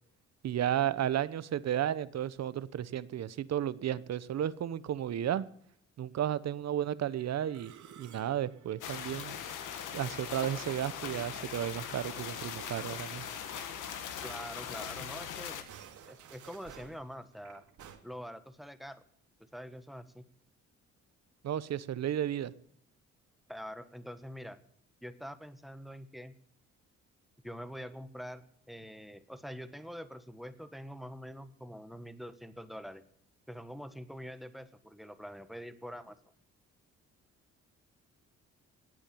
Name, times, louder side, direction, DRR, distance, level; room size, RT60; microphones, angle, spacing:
voice 1, 0.4-5.4 6.0-9.3 9.9-13.2 21.4-22.5, right 10 dB, 60° right, 17 dB, 0.9 m, -33 dB
Musical instrument, 7.2-14.0 14.3-14.5 14.7-14.9 15.5-18.0, right 8 dB, 75° right, 2.4 m, -56 dB
sound 1, 8.8-15.6, left 8 dB, 85° left, 2.0 m, -40 dB
voice 2, 14.2-15.7 16.1-17.6 18.0-19.0 19.5-20.2 23.5-24.6 25.0-26.3 27.4-33.0 33.5-36.2, equal, ahead, 11 dB, 1.4 m, -45 dB
17.0 x 9.0 x 7.0 m, 0.68 s
cardioid pair, 90°, 30 cm